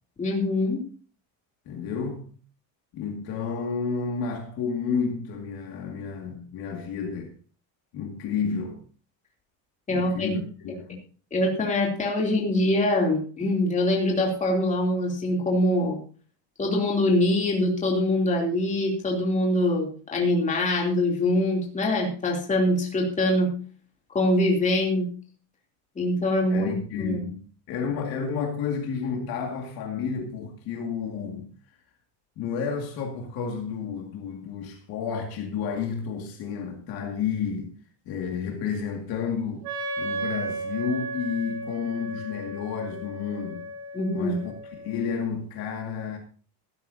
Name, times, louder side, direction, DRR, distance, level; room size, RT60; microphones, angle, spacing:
voice 1, 0.2-0.8 9.9-10.3 11.3-16.0 16.6-23.5 24.1-25.1 25.9-27.2 43.9-44.4, left 1 dB, 15° left, 3.1 m, -24 dB
voice 2, 1.7-2.3 2.9-7.3 7.9-8.8 9.9-11.0 26.5-27.4 27.7-31.5 32.4-37.7 38.1-39.7 40.0-43.6 44.1-44.5 44.8-46.2, left 6 dB, 45° left, 2.3 m, -31 dB
Wind instrument woodwind instrument, 39.6-45.3, right 2 dB, 45° right, 3.0 m, -35 dB
16.5 x 12.5 x 2.8 m
cardioid pair, 175°, 50 cm